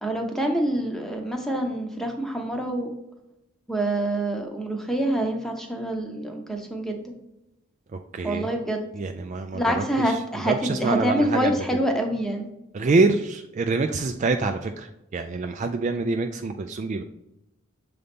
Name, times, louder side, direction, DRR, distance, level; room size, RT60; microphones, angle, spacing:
voice 1, 0.0-2.9 3.7-7.0 8.2-8.9 9.5-12.5, right 1 dB, ahead, 2 dB, 0.8 m, -26 dB
voice 2, 8.1-8.5 8.9-11.6 12.7-17.0, right 3 dB, 35° right, 6 dB, 0.3 m, -26 dB
6.8 x 3.9 x 3.6 m, 0.88 s
head